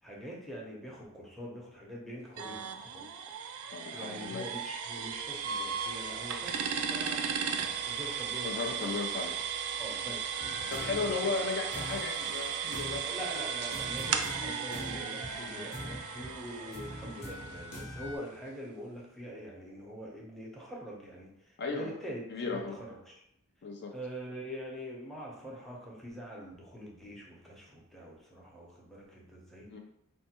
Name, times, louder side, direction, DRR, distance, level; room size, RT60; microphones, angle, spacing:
voice 1, 0.0-3.1 3.9-7.2 7.9-8.9 9.8-11.2 13.0-22.2 22.5-23.1 23.9-29.7, equal, ahead, -4 dB, 0.7 m, -44 dB
sound 1, 2.4-18.0, right 7 dB, 70° right, 0.4 m, -36 dB
voice 2, 3.7-4.5 8.4-9.3 10.7-13.0 21.6-21.9 22.3-22.8 23.6-23.9 29.7-29.8, left 4 dB, 50° left, 2 dB, 0.4 m, -35 dB
sound 2, 10.4-18.2, left 1 dB, 85° left, 0.9 m, -44 dB
4.4 x 2.2 x 2.9 m, 0.76 s
head